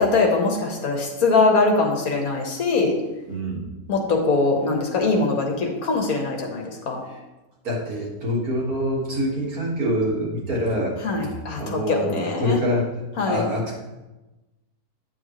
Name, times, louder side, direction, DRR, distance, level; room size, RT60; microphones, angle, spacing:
voice 1, 0.0-2.9 3.9-7.0 11.0-12.6 13.2-13.5, left 3 dB, 70° left, 1 dB, 1.7 m, -22 dB
voice 2, 3.3-3.7 7.6-10.9 11.2-11.3 11.6-12.9 13.3-13.7, equal, 75° right, -4 dB, 2.3 m, -25 dB
9.1 x 7.0 x 3.1 m, 1.0 s
omnidirectional pair, 1.6 m